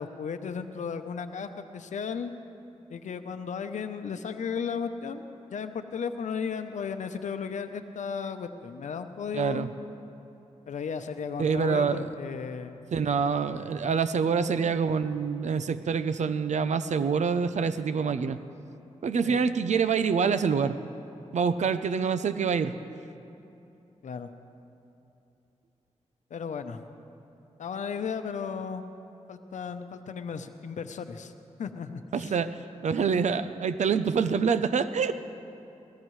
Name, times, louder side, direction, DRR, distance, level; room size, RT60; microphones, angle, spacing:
voice 1, 0.0-2.3 2.9-9.7 10.7-12.8 14.2-14.3 19.2-19.4 24.0-24.3 26.3-26.8 27.6-28.8 29.3-31.3 31.6-32.3, left 6 dB, 85° left, 8 dB, 0.7 m, -35 dB
voice 2, 9.3-9.7 11.4-12.0 12.9-18.4 19.0-20.8 21.3-22.7 32.1-35.1, right 6 dB, 75° right, 12 dB, 0.6 m, -26 dB
22.0 x 17.5 x 3.2 m, 2.8 s
cardioid pair, 60°, 12 cm